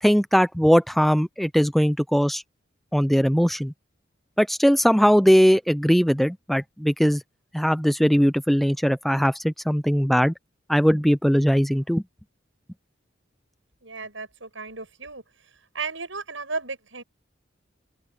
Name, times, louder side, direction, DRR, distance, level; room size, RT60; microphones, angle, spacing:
voice 1, 0.0-2.4 2.9-3.7 4.4-7.2 7.5-10.3 10.7-12.0, equal, ahead, 0.4 m, -20 dB
voice 2, 13.8-15.2 15.7-17.0, right 4 dB, 80° right, 7.9 m, -34 dB
open air
head